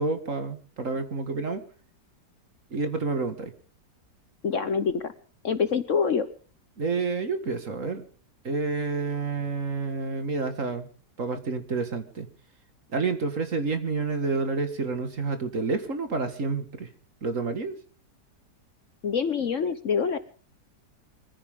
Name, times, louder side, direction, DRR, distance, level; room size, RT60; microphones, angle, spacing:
voice 1, 0.0-1.6 2.7-3.5 6.8-8.0 8.4-10.9 11.2-12.3 12.9-16.9 17.2-17.7, right 3 dB, 50° right, 8 dB, 2.2 m, -29 dB
voice 2, 4.4-5.1 5.4-6.3 19.0-20.2, left 6 dB, 50° left, 12 dB, 1.2 m, -25 dB
23.5 x 15.0 x 3.7 m, 0.41 s
omnidirectional pair, 1.8 m